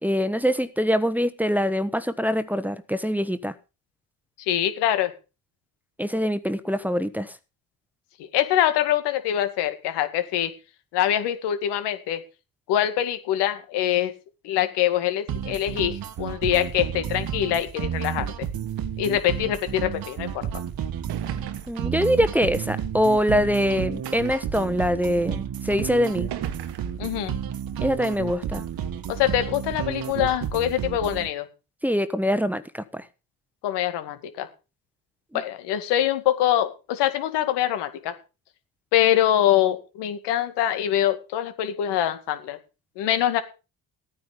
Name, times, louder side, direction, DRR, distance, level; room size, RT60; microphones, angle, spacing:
voice 1, 0.0-3.5 6.0-7.3 21.7-26.3 27.8-28.6 31.8-33.1 35.3-35.4, equal, 5° right, 12 dB, 1.1 m, -24 dB
voice 2, 4.5-5.1 8.2-10.5 10.9-12.2 12.7-14.1 14.4-18.3 19.0-20.5 27.0-27.4 29.1-31.5 33.6-34.5 35.3-38.1 38.9-42.6 43.0-43.4, left 11 dB, 90° left, 10 dB, 2.1 m, -24 dB
sound 1, 15.3-31.3, right 9 dB, 60° right, 1.6 m, -31 dB
sound 2, 20.5-20.6 21.1-21.9 22.8-22.9 24.0-24.6 25.5-25.6 26.3-27.1, right 12 dB, 80° right, 1.6 m, -39 dB
14.5 x 9.7 x 5.1 m, 0.32 s
cardioid pair, 85°, 40 cm